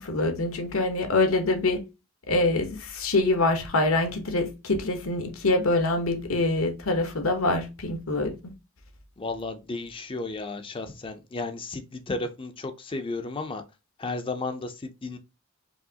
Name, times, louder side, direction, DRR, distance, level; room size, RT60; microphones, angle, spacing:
voice 1, 0.0-1.8 2.3-8.5, left 2 dB, 80° left, 1.1 m, -25 dB
voice 2, 9.2-13.6 14.0-15.2, left 3 dB, 25° left, 0.5 m, -33 dB
4.7 x 3.0 x 2.8 m
head